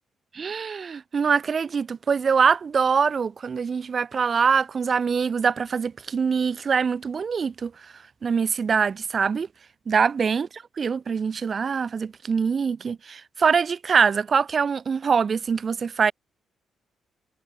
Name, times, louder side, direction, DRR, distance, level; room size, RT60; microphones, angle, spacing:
voice 1, 0.3-7.7 8.2-9.5 9.9-16.1, right 6 dB, 40° right, 2.6 m, -23 dB
cardioid pair, 100°, 0 cm